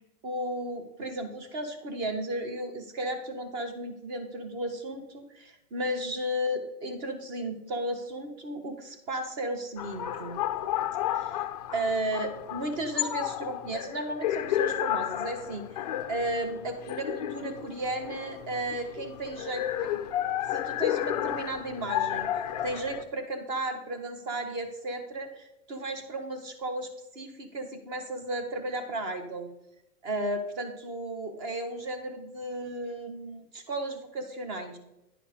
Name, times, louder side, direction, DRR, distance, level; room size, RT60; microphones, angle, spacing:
voice 1, 0.2-10.4 11.1-11.4 11.7-20.0 20.5-22.3 22.6-29.5 30.0-34.8, right 1 dB, 35° right, 8 dB, 1.4 m, -34 dB
sound 1, 9.8-23.0, left 12 dB, 30° left, 0.3 m, -32 dB
10.0 x 4.6 x 5.4 m, 0.90 s
hypercardioid pair, 145°, 45 cm